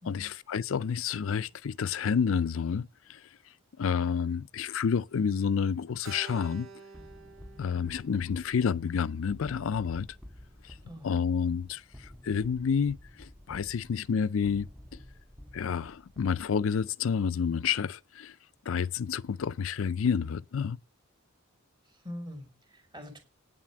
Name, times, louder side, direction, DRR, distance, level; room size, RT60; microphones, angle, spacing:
voice 1, 0.0-2.9 3.8-6.7 7.6-10.1 11.0-11.8 12.2-14.7 15.5-18.3 18.7-20.8, left 6 dB, 75° left, 0.4 m, -29 dB
Keyboard (musical), 6.0-10.4, right 5 dB, 80° right, 1.5 m, -51 dB
sound 1, 6.9-16.9, left 1 dB, 5° right, 0.8 m, -51 dB
voice 2, 22.0-23.2, equal, 20° right, 2.5 m, -43 dB
9.2 x 7.4 x 5.9 m
head